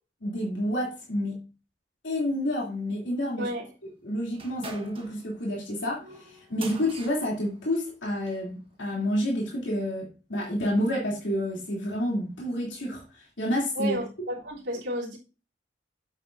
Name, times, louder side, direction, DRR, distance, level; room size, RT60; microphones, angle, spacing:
voice 1, 0.2-1.4 2.0-3.5 4.0-6.0 6.5-13.0 13.4-14.0, left 1 dB, 80° left, -3 dB, 3.0 m, -29 dB
voice 2, 3.4-3.7 13.8-15.2, equal, 75° right, -7 dB, 3.4 m, -32 dB
sound 1, 4.3-8.5, right 3 dB, 30° right, 1.3 m, -45 dB
9.6 x 8.0 x 2.7 m, 0.33 s
head